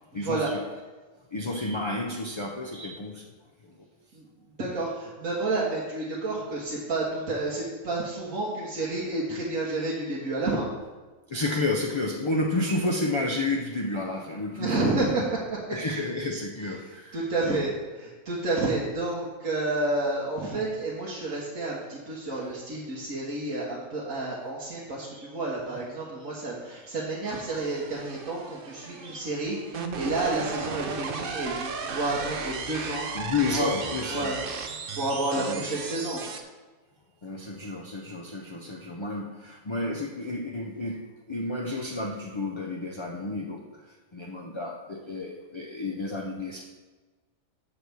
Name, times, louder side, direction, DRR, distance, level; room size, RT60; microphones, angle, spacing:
voice 1, 0.1-0.6 1.3-3.3 3.6-3.7 11.3-15.0 15.7-17.6 25.1-25.3 29.0-29.3 33.1-34.3 35.3-35.6 37.2-41.0 41.3-46.6, left 2 dB, 40° left, 0 dB, 0.4 m, -31 dB
voice 2, 4.6-10.7 14.5-15.6 15.8-16.0 16.8-33.1 33.4-33.7 34.1-34.4 34.9-36.2, right 2 dB, 85° right, -6 dB, 1.8 m, -30 dB
sound 1, 27.3-36.4, right 5 dB, 50° right, 0.8 m, -35 dB
6.8 x 4.6 x 6.8 m, 1.3 s
omnidirectional pair, 1.4 m